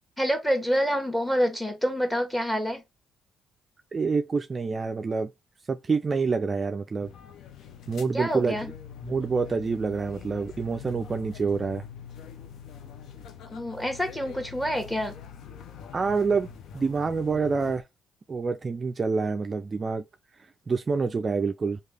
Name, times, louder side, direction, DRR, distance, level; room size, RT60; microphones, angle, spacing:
voice 1, 0.2-2.8 8.1-8.7 13.5-15.1, equal, 10° left, 1.3 m, -27 dB
voice 2, 3.9-5.3 5.7-7.1 7.9-8.6 9.0-11.8 15.9-16.5 16.7-17.8 18.3-20.0 20.7-21.8, right 4 dB, 35° right, 0.3 m, -27 dB
sound 1, 7.0-17.8, left 7 dB, 70° left, 0.5 m, -44 dB
3.2 x 2.3 x 3.4 m
cardioid pair, 80°, 0 cm